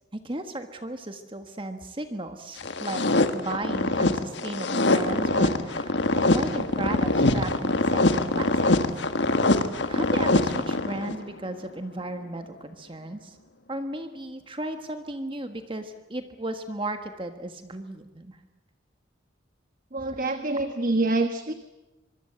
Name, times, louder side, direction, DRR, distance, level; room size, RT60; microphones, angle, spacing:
voice 1, 0.1-8.7 9.9-13.4 13.7-18.4 20.0-20.2, right 2 dB, 25° right, 7 dB, 1.4 m, -35 dB
sound 1, 2.6-11.2, left 2 dB, 65° left, 1.5 m, -24 dB
voice 2, 19.9-21.5, right 2 dB, 45° right, 8 dB, 1.2 m, -26 dB
25.0 x 23.5 x 7.9 m, 1.0 s
head